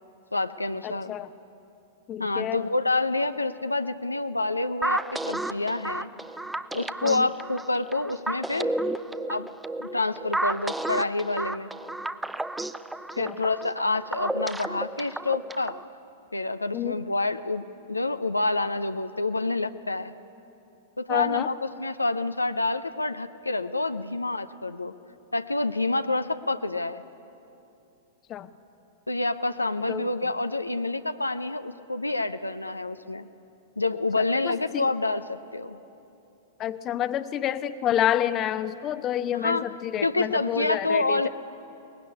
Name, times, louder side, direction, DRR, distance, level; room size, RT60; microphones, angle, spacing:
voice 1, 0.3-1.1 2.2-6.1 6.7-8.7 9.3-9.5 9.8-11.7 13.2-15.8 16.3-20.1 21.0-24.9 25.3-27.0 29.1-33.3 33.8-35.8 39.4-39.6 40.0-41.3, left 2 dB, 85° left, 10 dB, 0.7 m, -28 dB
voice 2, 0.8-1.3 2.1-2.7 7.0-7.3 13.2-13.4 16.7-17.0 21.1-21.5 28.3-28.5 29.9-30.1 34.4-34.9 36.6-41.3, left 11 dB, 30° left, 13 dB, 0.8 m, -28 dB
sound 1, 4.8-15.8, right 2 dB, 5° right, 0.7 m, -32 dB
22.5 x 19.5 x 9.8 m, 2.9 s
figure-of-eight pair, 100°, 0 cm